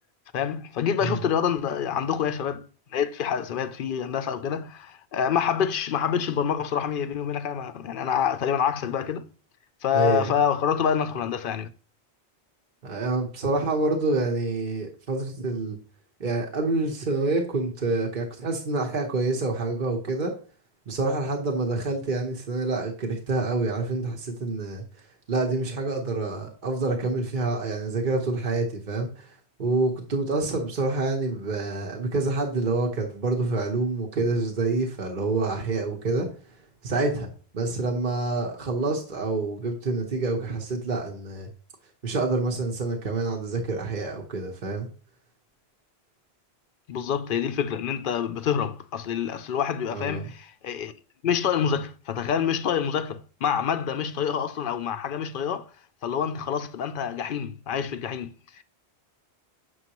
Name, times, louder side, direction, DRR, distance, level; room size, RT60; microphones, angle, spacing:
voice 1, 0.3-2.7 2.9-9.2 9.8-11.7 46.9-50.9 51.2-55.7 56.0-58.6, left 8 dB, 60° left, 0.7 m, -27 dB
voice 2, 9.9-10.3 12.8-15.8 16.2-20.3 20.9-24.8 25.3-29.3 29.6-36.3 36.8-37.3 37.5-41.5 42.0-44.9 49.9-50.3, right 3 dB, 50° right, 1.1 m, -27 dB
7.4 x 6.3 x 2.9 m
omnidirectional pair, 1.1 m